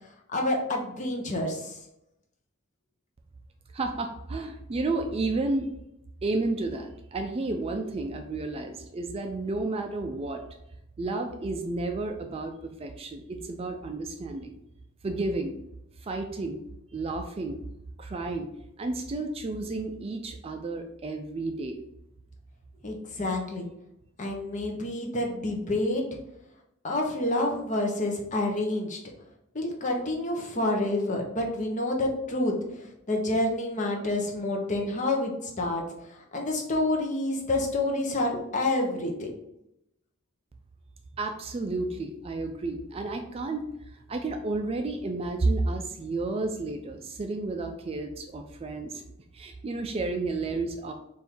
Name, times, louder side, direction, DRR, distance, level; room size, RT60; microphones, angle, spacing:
voice 1, 0.3-1.8 22.8-23.7 24.2-26.0 26.8-29.0 29.5-35.8 36.1-39.3, left 2 dB, 35° left, 0 dB, 0.8 m, -28 dB
voice 2, 3.7-5.7 6.2-10.4 11.0-14.5 15.0-15.6 16.0-16.6 16.9-17.6 18.0-18.5 18.8-21.8 41.2-43.6 44.1-49.0 49.3-50.9, right 2 dB, 30° right, 5 dB, 0.3 m, -31 dB
3.6 x 2.6 x 4.4 m, 0.82 s
head